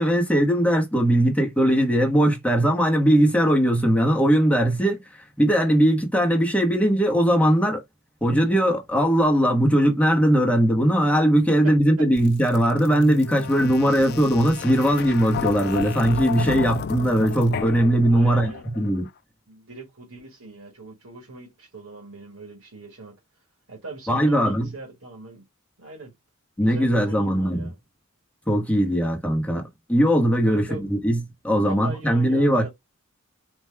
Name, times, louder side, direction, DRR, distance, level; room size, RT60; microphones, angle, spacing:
voice 1, 0.0-5.0 5.4-7.8 8.2-19.1 24.1-24.7 26.6-27.7 28.5-29.6 29.9-31.2 31.4-32.6, equal, 5° left, 0.9 m, -20 dB
voice 2, 11.6-12.1 18.1-18.7 19.5-23.2 23.7-25.4 25.8-26.1 26.6-27.8 30.4-30.8 31.6-32.7, right 2 dB, 70° right, 1.8 m, -40 dB
sound 1, 12.2-18.9, left 7 dB, 45° left, 0.3 m, -32 dB
4.4 x 2.3 x 3.4 m
head